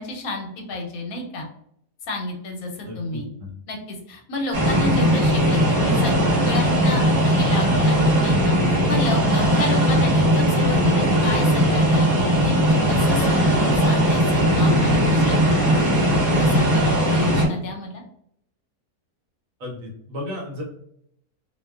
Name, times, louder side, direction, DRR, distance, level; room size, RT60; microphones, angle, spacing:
voice 1, 0.0-1.5 2.1-3.3 3.7-6.2 6.4-15.9 16.3-18.0, left 2 dB, 75° left, 2 dB, 1.0 m, -31 dB
voice 2, 2.8-3.5 4.6-4.9 8.5-8.7 19.6-20.6, left 2 dB, 65° right, -2 dB, 1.1 m, -34 dB
sound 1, 4.5-17.5, equal, 35° right, 0.7 m, -19 dB
2.6 x 2.2 x 2.3 m, 0.72 s
omnidirectional pair, 1.6 m